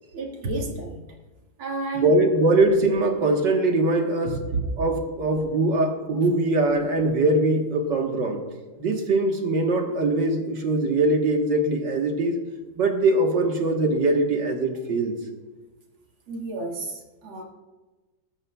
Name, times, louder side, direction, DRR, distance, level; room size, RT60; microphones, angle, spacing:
voice 1, 0.1-1.0 1.6-2.1 4.2-4.6 16.3-17.4, right 3 dB, 80° right, -1 dB, 2.7 m, -30 dB
voice 2, 2.0-4.4 4.8-8.4 8.8-12.4 12.8-15.2, right 2 dB, 60° right, 2 dB, 1.9 m, -22 dB
20.0 x 13.5 x 2.3 m, 1.2 s
omnidirectional pair, 2.3 m